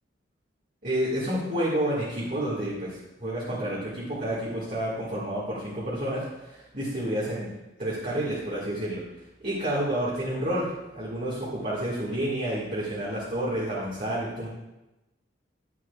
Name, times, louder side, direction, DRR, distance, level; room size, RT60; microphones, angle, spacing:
voice 1, 0.8-7.5 7.8-9.0 9.4-14.5, right 1 dB, 45° right, -7 dB, 1.8 m, -30 dB
10.0 x 9.9 x 2.4 m, 0.99 s
head